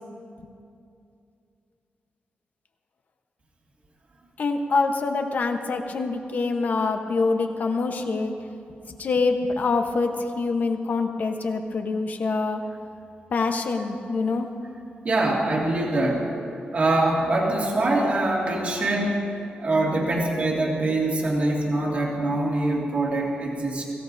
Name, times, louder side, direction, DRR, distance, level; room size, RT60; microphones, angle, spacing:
voice 1, 4.4-8.3 8.9-12.6 13.3-14.5, left 3 dB, 50° left, 5 dB, 1.0 m, -25 dB
voice 2, 15.0-16.3 16.7-19.2 19.6-23.9, right 2 dB, 40° right, -3 dB, 2.1 m, -24 dB
22.0 x 16.0 x 2.7 m, 2.6 s
wide cardioid pair, 165°, 4 cm